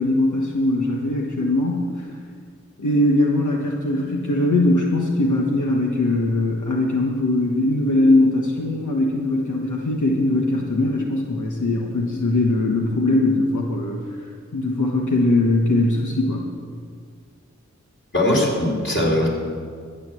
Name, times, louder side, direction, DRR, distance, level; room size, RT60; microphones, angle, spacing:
voice 1, 0.0-1.9 2.8-14.0 14.5-16.5, left 2 dB, 90° left, -1 dB, 1.3 m, -20 dB
voice 2, 18.1-19.3, left 1 dB, 40° left, -2 dB, 3.9 m, -20 dB
12.5 x 9.0 x 7.6 m, 2.1 s
wide cardioid pair, 40°, 29 cm